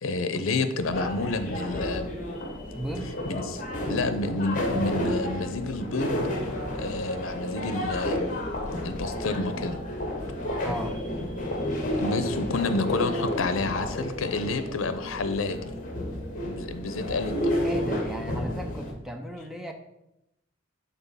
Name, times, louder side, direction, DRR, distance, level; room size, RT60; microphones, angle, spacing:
voice 1, 0.0-2.1 3.3-3.6 3.9-6.2 6.7-8.3 8.8-9.8 11.9-15.8 16.4-17.5, left 3 dB, 85° left, 10 dB, 0.6 m, -29 dB
sound 1, 0.8-18.9, left 1 dB, 40° left, 1.2 m, -31 dB
voice 2, 2.7-3.1 10.6-11.0 17.6-19.7, equal, ahead, 4 dB, 0.4 m, -35 dB
6.0 x 3.9 x 5.5 m, 0.87 s
head